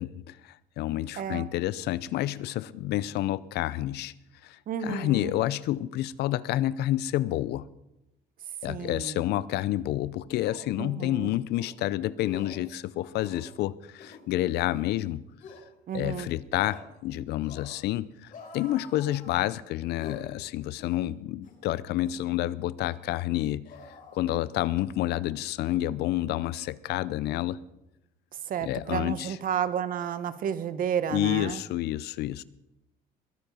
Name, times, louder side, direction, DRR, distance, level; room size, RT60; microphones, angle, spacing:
voice 1, 0.0-4.1 4.4-7.7 8.6-15.2 15.9-23.7 24.1-27.6 28.6-29.4 31.1-32.4, left 14 dB, 75° left, 0.6 m, -29 dB
voice 2, 1.2-1.5 4.7-5.3 8.7-9.2 10.8-11.3 15.9-16.3 28.5-31.6, right 8 dB, 55° right, 1.1 m, -31 dB
sound 1, 9.7-9.8 10.4-10.7 11.5-11.7 12.2-12.6 13.1-13.5 13.9-14.2 14.7-14.9 15.4-15.6 16.6-16.9 17.4-17.8 18.3-19.6 20.0-20.3 20.7-21.0 21.4-21.6 22.0-22.2 22.8-23.0 23.6-24.7 25.0-25.2, left 4 dB, 50° left, 4.3 m, -47 dB
21.5 x 9.1 x 5.4 m
cardioid pair, 110°, 17 cm